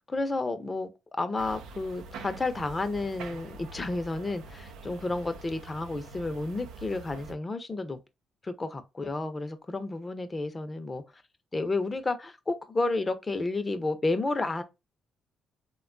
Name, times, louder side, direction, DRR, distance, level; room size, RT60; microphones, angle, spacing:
voice 1, 0.1-8.0 8.4-11.0 11.5-14.6, left 2 dB, 25° left, 0.5 m, -31 dB
sound 1, 1.4-7.3, right 3 dB, 90° right, 0.4 m, -45 dB
3.3 x 2.2 x 2.5 m
cardioid pair, 90°, 0 cm